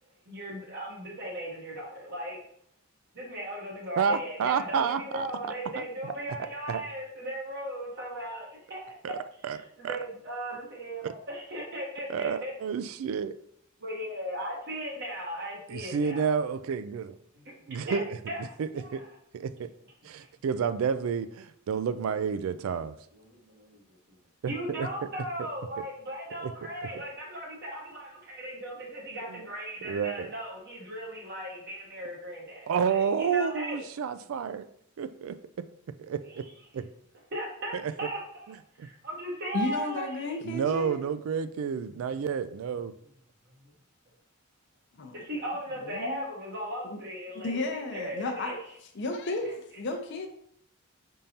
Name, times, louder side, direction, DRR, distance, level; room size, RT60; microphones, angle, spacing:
voice 1, 0.3-2.4 3.1-9.2 9.5-12.5 13.8-16.2 17.3-18.0 18.3-18.4 18.7-19.0 23.2-24.2 24.4-33.8 37.3-38.5 38.8-40.4 45.1-48.6, equal, 55° right, -3 dB, 1.1 m, -37 dB
voice 2, 4.0-5.3 5.8-5.9 6.7-6.8 9.0-9.2 9.4-9.6 9.8-10.0 11.0-11.1 12.1-13.4 15.7-17.2 17.7-19.0 19.3-19.7 20.0-23.0 24.4-24.9 26.4-26.5 29.3-29.4 29.8-30.3 32.7-34.7 35.0-35.7 36.0-36.5 36.7-36.9 37.7-37.9 38.5-38.9 40.4-42.9, right 6 dB, 75° right, 13 dB, 0.3 m, -30 dB
voice 3, 39.5-41.0 45.0-45.2 45.8-46.2 46.8-47.0 47.3-48.5 49.0-50.3, left 2 dB, 60° left, 4 dB, 0.6 m, -33 dB
5.2 x 3.6 x 2.8 m, 0.67 s
head